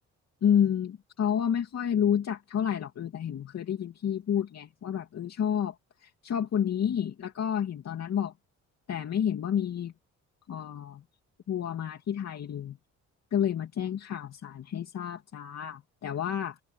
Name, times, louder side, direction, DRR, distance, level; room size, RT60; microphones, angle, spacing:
voice 1, 0.4-8.3 8.9-9.9 10.5-11.0 11.5-12.8 13.3-16.6, left 9 dB, 60° left, 2.7 m, -30 dB
cardioid pair, 90°, 30 cm